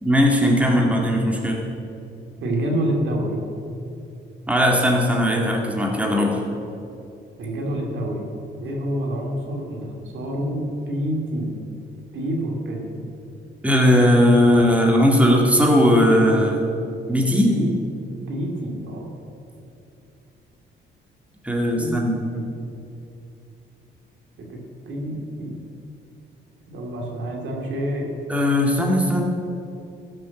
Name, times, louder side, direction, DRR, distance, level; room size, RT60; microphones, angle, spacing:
voice 1, 0.0-1.6 4.5-6.4 13.6-16.6 17.1-17.5 21.4-22.2 28.3-29.2, equal, 5° right, 0 dB, 2.1 m, -18 dB
voice 2, 2.4-3.4 7.4-8.3 8.6-11.5 12.1-13.1 17.4-17.7 18.3-19.1 21.7-22.1 22.3-22.5 24.4-24.6 24.9-25.6 26.7-28.1, right 1 dB, 75° right, 0 dB, 2.7 m, -27 dB
14.5 x 7.4 x 7.2 m, 2.7 s
cardioid pair, 90°, 20 cm